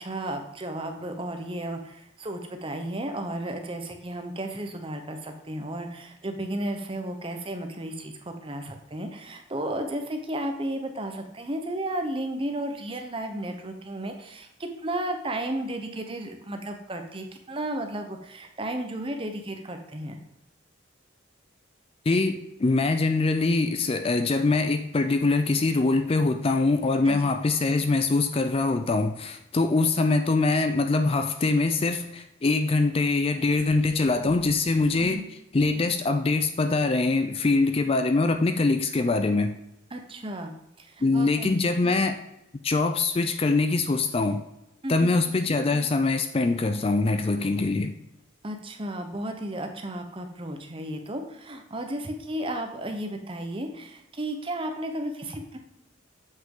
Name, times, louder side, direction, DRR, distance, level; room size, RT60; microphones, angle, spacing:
voice 1, 0.0-20.2 27.0-27.3 35.0-35.3 39.9-40.5 40.8-41.7 44.8-45.1 48.4-55.6, right 1 dB, 25° right, 5 dB, 0.8 m, -33 dB
voice 2, 22.1-35.2 35.5-39.6 41.0-42.2 42.6-44.4 44.9-47.9, left 3 dB, 30° left, 7 dB, 0.4 m, -23 dB
7.5 x 5.8 x 3.8 m, 0.85 s
head